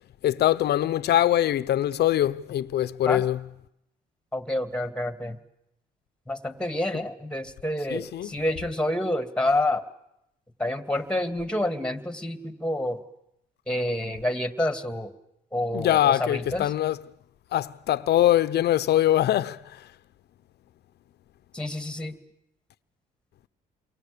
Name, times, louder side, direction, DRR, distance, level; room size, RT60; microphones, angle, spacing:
voice 1, 0.2-3.4 7.9-8.3 15.7-17.0 17.5-19.8, left 12 dB, 65° left, 1.0 m, -23 dB
voice 2, 4.3-5.4 6.3-9.9 10.6-13.0 13.7-15.1 15.5-16.7 21.5-22.2, left 1 dB, 5° left, 2.6 m, -28 dB
29.5 x 23.5 x 7.0 m
cardioid pair, 85°, 18 cm